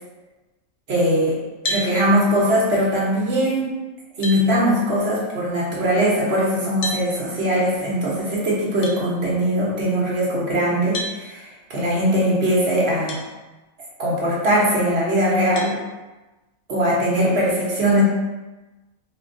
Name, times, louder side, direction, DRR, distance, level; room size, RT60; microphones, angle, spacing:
voice 1, 0.9-1.4 1.6-3.6 4.2-13.2 14.0-15.8 16.7-18.0, equal, 50° right, -5 dB, 1.0 m, -20 dB
sound 1, 1.6-1.9 3.6-3.7 4.2-4.4 6.8-7.0 8.8-9.0 10.9-11.2 13.1-13.2 13.9-14.0 15.6-15.8, left 1 dB, 80° left, 1.0 m, -28 dB
4.2 x 2.2 x 2.5 m, 1.1 s
omnidirectional pair, 1.4 m